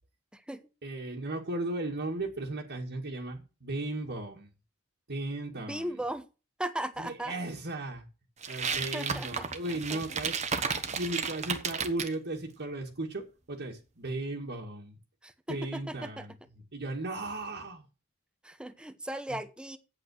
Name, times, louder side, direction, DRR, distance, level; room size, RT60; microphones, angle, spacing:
voice 1, 0.8-4.5 5.1-6.0 7.0-8.1 8.5-15.0 15.5-17.9 19.3-19.4, right 2 dB, 50° right, 1.8 m, -36 dB
voice 2, 5.6-6.3 6.6-7.3 8.9-9.5 9.9-10.0 15.2-16.3 18.4-19.8, right 1 dB, 5° right, 0.9 m, -37 dB
sound 1, 8.4-12.1, right 5 dB, 35° right, 1.1 m, -33 dB
8.4 x 8.2 x 6.2 m
head